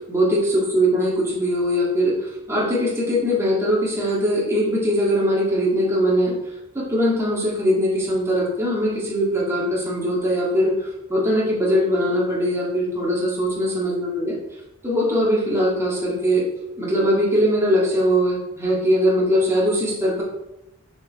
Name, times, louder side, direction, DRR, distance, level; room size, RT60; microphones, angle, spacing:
voice 1, 0.1-6.3 6.7-14.4 14.8-16.4 16.8-20.2, equal, 15° right, -5 dB, 1.9 m, -21 dB
6.8 x 5.1 x 3.6 m, 0.88 s
head